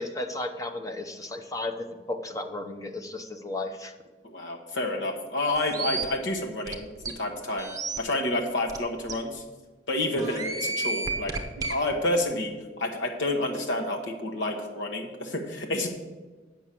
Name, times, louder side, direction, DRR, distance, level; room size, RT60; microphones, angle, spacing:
voice 1, 0.0-3.9 10.1-10.4, left 2 dB, 20° left, 6 dB, 0.7 m, -34 dB
voice 2, 4.2-6.9 7.1-7.7 8.0-9.4 9.9-15.9, left 1 dB, 85° left, 2 dB, 1.2 m, -29 dB
sound 1, 5.6-6.0 6.7-6.8 7.0-7.1 7.6-8.0 8.7-8.8 9.1-9.2 10.2-11.7, right 3 dB, 20° right, 0.8 m, -31 dB
8.3 x 6.0 x 7.5 m, 1.3 s
head